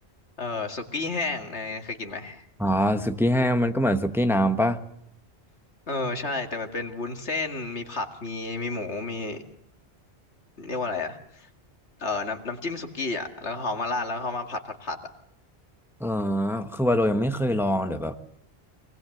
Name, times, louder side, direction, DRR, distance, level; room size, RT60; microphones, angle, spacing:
voice 1, 0.4-2.4 5.9-9.4 10.6-11.5 12.0-15.0, left 3 dB, 85° left, 5 dB, 2.4 m, -31 dB
voice 2, 2.6-4.8 16.0-18.3, equal, ahead, 7 dB, 1.1 m, -24 dB
25.5 x 19.5 x 7.9 m, 0.75 s
omnidirectional pair, 1.1 m